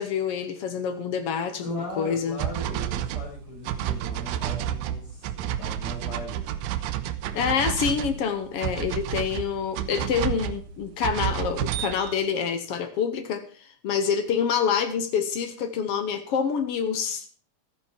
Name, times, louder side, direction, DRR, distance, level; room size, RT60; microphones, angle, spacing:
voice 1, 0.0-2.4 7.3-17.3, left 7 dB, 65° left, 8 dB, 1.6 m, -27 dB
voice 2, 1.6-6.6, left 1 dB, 40° left, -3 dB, 5.7 m, -38 dB
sound 1, 2.4-12.2, right 11 dB, 85° right, 2.2 m, -30 dB
12.5 x 10.5 x 4.4 m, 0.43 s
omnidirectional pair, 3.6 m